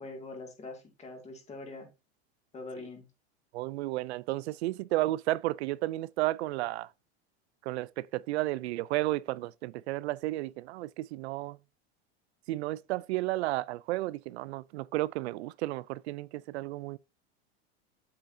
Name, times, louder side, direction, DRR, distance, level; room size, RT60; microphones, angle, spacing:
voice 1, 0.0-1.9 2.5-3.1, left 3 dB, 20° left, 2.2 m, -43 dB
voice 2, 3.5-6.9 7.7-11.6 12.5-17.0, right 17 dB, 85° right, 0.5 m, -32 dB
7.9 x 6.8 x 2.7 m
supercardioid pair, 140°, 32 cm